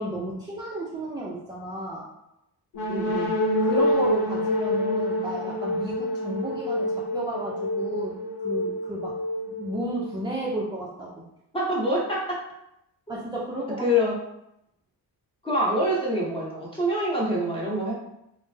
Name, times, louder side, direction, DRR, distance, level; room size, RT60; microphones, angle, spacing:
voice 1, 0.0-2.1 3.6-9.2 9.6-11.1 13.1-13.9, right 1 dB, 10° right, -5 dB, 0.3 m, -33 dB
sound 1, 2.7-10.4, left 1 dB, 65° left, 0.8 m, -27 dB
voice 2, 2.9-3.3 11.5-12.4 13.8-14.2 15.4-17.9, equal, 10° left, -5 dB, 0.9 m, -25 dB
3.2 x 2.0 x 3.1 m, 0.83 s
cardioid pair, 130°, 43 cm